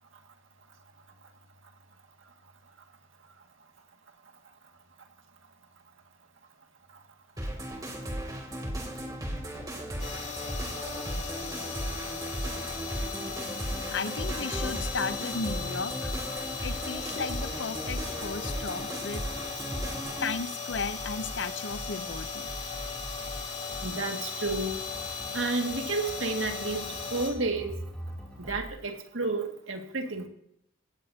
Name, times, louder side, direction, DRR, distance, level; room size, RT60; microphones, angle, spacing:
sound 1, 7.4-20.3, equal, 20° right, 2.8 m, -36 dB
sound 2, 10.0-27.3, left 5 dB, 35° left, 3.1 m, -37 dB
sound 3, 12.7-28.7, equal, 5° left, 3.1 m, -46 dB
voice 1, 13.9-16.1 16.6-19.3 20.2-22.4, left 4 dB, 60° left, 12 dB, 0.7 m, -35 dB
voice 2, 23.8-24.8 25.3-27.7 28.4-30.3, right 3 dB, 75° right, 3 dB, 2.1 m, -31 dB
17.0 x 14.5 x 2.8 m, 0.73 s
head